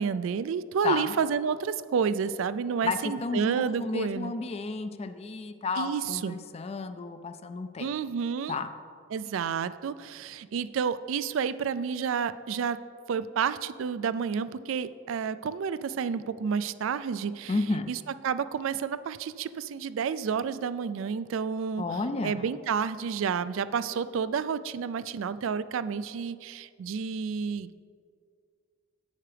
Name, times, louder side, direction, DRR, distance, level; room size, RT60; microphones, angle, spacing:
voice 1, 0.0-4.3 5.8-6.4 7.8-8.6 9.1-12.8 13.1-17.5 17.9-21.8 22.2-27.7, right 6 dB, 65° right, 15 dB, 0.3 m, -30 dB
voice 2, 2.8-7.9 8.5-8.7 17.5-17.9 21.8-22.5, left 3 dB, 30° left, 9 dB, 0.4 m, -32 dB
11.5 x 8.5 x 3.3 m, 2.2 s
head